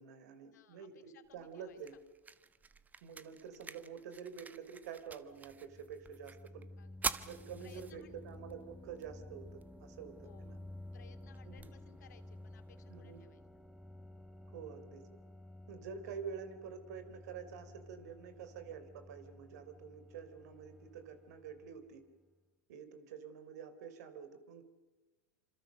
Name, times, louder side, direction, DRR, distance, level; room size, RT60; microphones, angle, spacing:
voice 1, 0.0-2.0 3.0-6.7 7.2-10.6 11.5-11.7 12.9-13.3 14.5-15.1 15.7-22.0 22.7-24.6, right 7 dB, 75° right, 10 dB, 3.6 m, -48 dB
voice 2, 0.5-1.8 6.8-7.2 7.6-8.2 10.2-10.5 10.9-13.4, left 9 dB, 85° left, 8 dB, 2.5 m, -62 dB
sound 1, 1.2-13.2, right 4 dB, 20° right, 1.2 m, -48 dB
sound 2, 5.3-22.0, left 1 dB, ahead, 1.4 m, -53 dB
26.5 x 26.0 x 6.7 m, 1.2 s
hypercardioid pair, 100°, 9 cm